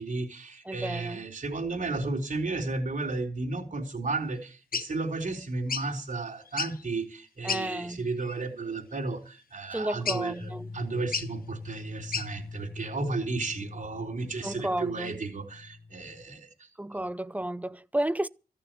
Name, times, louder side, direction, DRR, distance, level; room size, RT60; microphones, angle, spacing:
voice 1, 0.0-16.5 16.9-17.0, right 3 dB, 55° right, 3.9 m, -33 dB
voice 2, 0.6-1.2 7.4-8.0 9.7-10.7 14.4-15.2 16.8-18.3, right 1 dB, 10° right, 0.6 m, -32 dB
sound 1, 4.7-4.9 5.7-5.9 6.5-6.9 7.5-7.7 8.2-8.4 10.1-10.4 11.1-11.3 12.1-12.3, left 6 dB, 60° left, 0.9 m, -32 dB
sound 2, 10.4-16.3, left 3 dB, 15° left, 1.1 m, -43 dB
14.5 x 6.8 x 9.0 m
cardioid pair, 75°, 16 cm